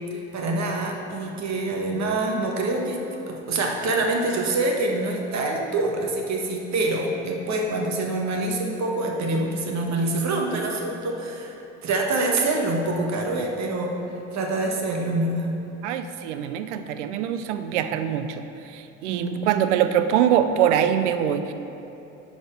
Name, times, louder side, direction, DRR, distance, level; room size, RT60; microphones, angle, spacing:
voice 1, 0.1-3.0 3.3-13.9 14.3-15.5 19.1-19.5, right 2 dB, 50° right, 0 dB, 1.4 m, -26 dB
voice 2, 15.8-18.4 18.7-21.5, right 9 dB, 85° right, 9 dB, 0.5 m, -23 dB
11.0 x 4.3 x 4.5 m, 2.9 s
hypercardioid pair, 65°, 35 cm